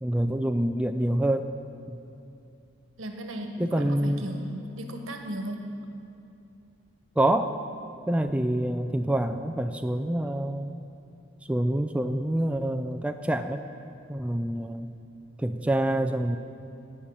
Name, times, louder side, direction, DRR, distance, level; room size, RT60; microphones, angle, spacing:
voice 1, 0.0-1.5 3.6-4.2 7.2-7.6 8.1-10.7 11.5-13.6 14.1-14.9 15.4-16.4, right 1 dB, 5° right, 6 dB, 0.4 m, -26 dB
voice 2, 3.0-5.7, right 1 dB, 85° right, 3 dB, 1.5 m, -36 dB
16.0 x 5.7 x 8.8 m, 2.7 s
head